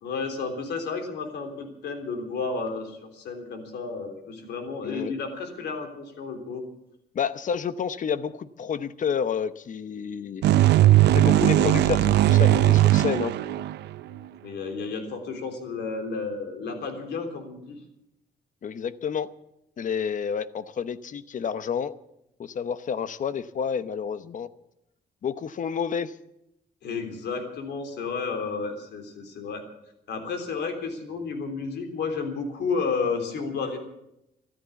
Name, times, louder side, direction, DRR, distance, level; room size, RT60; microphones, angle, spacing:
voice 1, 0.0-6.6 13.9-14.0 14.4-17.8 26.8-29.6 30.1-33.8, left 4 dB, 85° left, 6 dB, 3.5 m, -32 dB
voice 2, 4.8-5.1 7.1-10.4 11.1-13.3 18.6-19.3 19.8-21.9 22.4-24.5 25.2-26.1, left 7 dB, 50° left, 14 dB, 0.9 m, -29 dB
sound 1, 10.4-14.2, right 14 dB, 90° right, 0.6 m, -19 dB
14.0 x 13.5 x 7.0 m, 0.83 s
cardioid pair, 110°, 17 cm